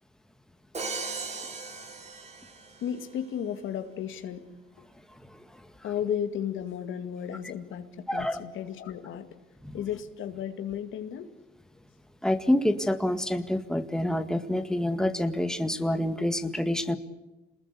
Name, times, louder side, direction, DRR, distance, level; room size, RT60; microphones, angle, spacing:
Crash cymbal, 0.7-3.0, right 4 dB, 35° right, 4.1 m, -37 dB
voice 1, 2.8-4.5 5.8-9.3 9.7-11.3, left 9 dB, 80° left, 8 dB, 2.2 m, -34 dB
voice 2, 8.1-8.4 9.7-9.8 12.2-17.0, left 1 dB, 5° left, 8 dB, 1.9 m, -27 dB
28.0 x 20.5 x 8.5 m, 1.0 s
cardioid pair, 90°, 20 cm